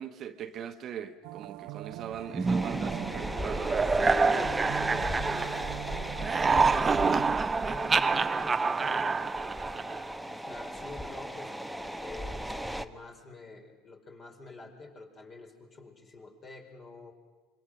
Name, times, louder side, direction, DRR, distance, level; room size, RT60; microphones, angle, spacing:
voice 1, 0.0-4.5, right 8 dB, 45° right, 1.1 m, -41 dB
sound 1, 1.2-7.4, right 17 dB, 60° right, 0.7 m, -42 dB
sound 2, 2.3-5.8 6.1-10.2, right 4 dB, 25° right, 0.7 m, -27 dB
sound 3, 2.4-12.8, equal, ahead, 1.0 m, -36 dB
voice 2, 3.8-6.1 6.4-17.1, left 3 dB, 35° left, 4.5 m, -44 dB
26.0 x 23.0 x 6.5 m
hypercardioid pair, 70°, 0 cm